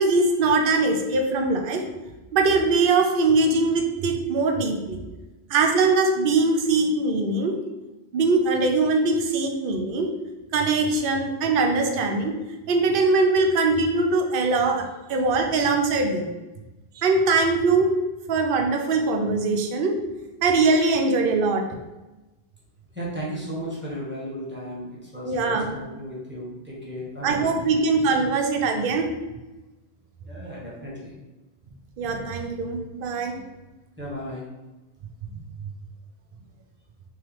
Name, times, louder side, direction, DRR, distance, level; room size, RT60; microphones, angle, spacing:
voice 1, 0.0-1.8 2.3-5.0 5.5-7.6 8.1-10.1 10.5-12.4 12.7-16.3 17.0-17.9 18.3-20.0 20.4-21.7 25.2-25.7 27.2-29.1 32.0-33.4 35.6-35.7, right 3 dB, 60° right, 3 dB, 0.7 m, -22 dB
voice 2, 22.9-27.5 30.2-31.2 34.0-34.5, equal, 10° right, -6 dB, 1.0 m, -35 dB
3.6 x 3.0 x 3.1 m, 1.1 s
omnidirectional pair, 1.1 m